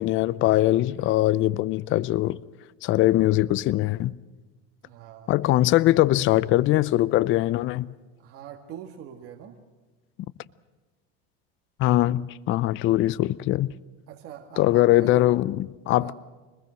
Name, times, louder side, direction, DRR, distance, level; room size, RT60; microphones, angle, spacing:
voice 1, 0.0-2.4 2.8-4.2 5.3-7.9 11.8-13.7 14.6-16.1, left 15 dB, 40° left, 0.6 m, -22 dB
voice 2, 4.8-5.7 8.2-9.6 14.1-15.3 15.9-16.1, right 10 dB, 50° right, 2.0 m, -43 dB
25.5 x 20.5 x 6.4 m
supercardioid pair, 115°, 31 cm